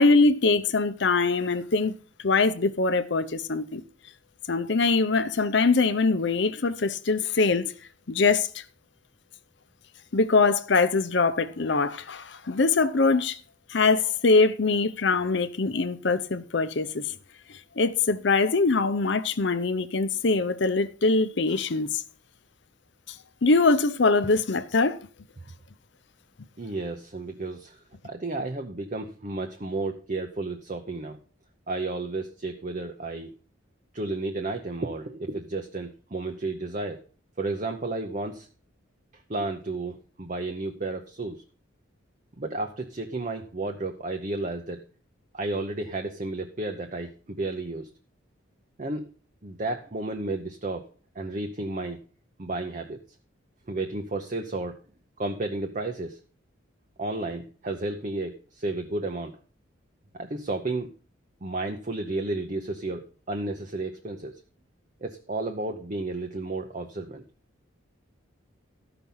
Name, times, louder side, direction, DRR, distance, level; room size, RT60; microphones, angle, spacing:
voice 1, 0.0-1.9 2.2-3.8 4.5-7.7 8.1-8.6 10.1-13.4 13.7-17.1 17.8-22.0 23.4-25.0, left 3 dB, 60° left, 0.7 m, -23 dB
voice 2, 26.6-27.8 28.0-31.2 31.7-33.3 33.9-37.0 37.4-38.5 39.3-41.4 42.4-44.8 45.3-47.9 48.8-49.1 49.4-50.9 51.1-52.0 52.4-53.0 53.7-54.8 55.2-56.2 57.0-59.4 60.1-60.9 61.4-64.4 65.0-67.2, right 2 dB, 40° right, 0.7 m, -32 dB
13.5 x 5.9 x 5.5 m
head